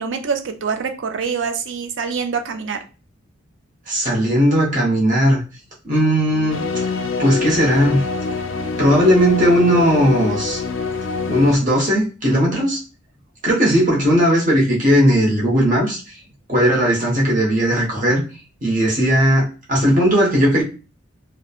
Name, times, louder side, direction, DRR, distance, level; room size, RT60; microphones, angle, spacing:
voice 1, 0.0-2.8, right 5 dB, 70° right, 6 dB, 0.4 m, -25 dB
voice 2, 3.9-5.4 5.8-6.6 7.2-8.0 8.8-10.6 11.3-12.8 13.4-16.1 16.5-18.2 18.6-20.6, equal, 40° right, -4 dB, 0.8 m, -17 dB
sound 1, 6.5-11.5, left 4 dB, 70° left, 0.3 m, -25 dB
2.9 x 2.1 x 2.3 m, 0.33 s
head